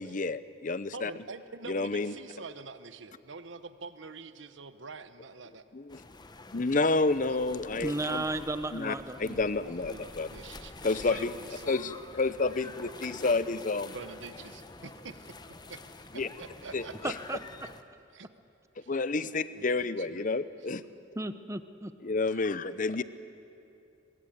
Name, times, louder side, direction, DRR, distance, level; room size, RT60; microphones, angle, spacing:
voice 1, 0.0-1.1 1.7-2.1 5.7-6.0 6.5-8.2 8.7-10.3 10.8-11.3 11.7-13.9 16.1-16.3 16.7-17.1 18.9-20.8 22.0-23.0, left 3 dB, 45° left, 15 dB, 0.8 m, -30 dB
voice 2, 0.9-5.6 7.3-7.4 9.8-11.8 13.9-15.4 15.7-15.8 16.1-17.4 18.1-18.3 18.8-18.9 19.5-20.3 20.6-20.7, right 4 dB, 85° right, 12 dB, 1.0 m, -46 dB
sound 1, 5.9-17.8, left 3 dB, 20° left, 1.0 m, -47 dB
voice 3, 7.8-9.4 17.3-17.4 21.2-21.9 22.3-22.4, right 2 dB, 15° right, 11 dB, 0.9 m, -34 dB
24.0 x 21.5 x 8.9 m, 2.7 s
head